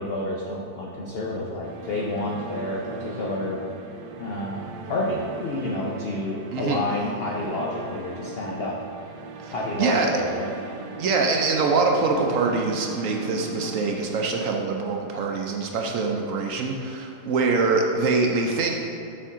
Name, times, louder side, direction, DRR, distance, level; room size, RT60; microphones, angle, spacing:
voice 1, 0.0-3.6 4.2-8.8 9.5-10.5, left 1 dB, 65° left, -3 dB, 0.6 m, -29 dB
sound 1, 1.6-15.7, right 3 dB, 85° right, 1.3 m, -38 dB
voice 2, 6.5-6.8 9.4-9.5 9.8-10.1 11.0-18.7, right 4 dB, 70° right, 1 dB, 0.8 m, -24 dB
6.9 x 4.5 x 3.6 m, 2.7 s
omnidirectional pair, 1.8 m